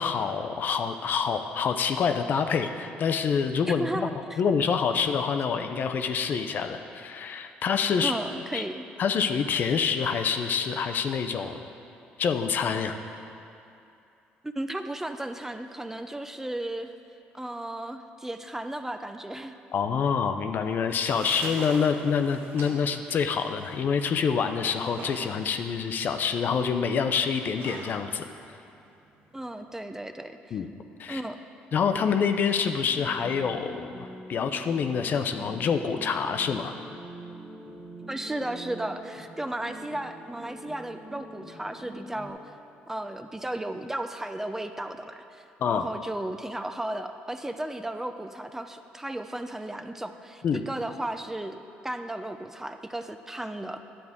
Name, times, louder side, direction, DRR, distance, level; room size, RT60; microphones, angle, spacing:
voice 1, 0.0-4.1 4.4-8.1 8.5-8.6 9.0-11.6 12.2-13.0 19.7-28.3 30.5-30.7 31.0-31.2 31.7-36.7 45.6-45.8 50.4-50.6, left 6 dB, 55° left, 7 dB, 0.5 m, -26 dB
voice 2, 3.7-4.4 8.0-8.9 14.4-16.9 17.3-19.5 29.3-30.6 31.1-31.4 38.1-42.4 42.9-53.9, right 1 dB, 10° right, 8 dB, 0.4 m, -35 dB
sound 1, 20.6-29.6, right 3 dB, 65° right, 1.0 m, -45 dB
sound 2, 32.8-42.3, right 1 dB, 30° right, 1.3 m, -44 dB
10.0 x 7.9 x 3.6 m, 2.7 s
cardioid pair, 85°, 4 cm